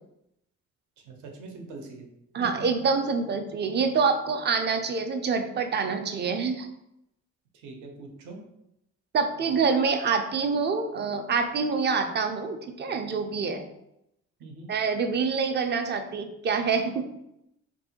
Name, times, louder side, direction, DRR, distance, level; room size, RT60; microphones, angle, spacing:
voice 1, 1.0-2.1 2.4-2.5 7.5-8.4 14.4-14.7, right 3 dB, 80° right, 2 dB, 0.7 m, -42 dB
voice 2, 2.3-6.7 9.1-13.6 14.7-17.0, right 5 dB, 35° right, 6 dB, 0.4 m, -26 dB
2.8 x 2.6 x 2.7 m, 0.82 s
cardioid pair, 90°, 30 cm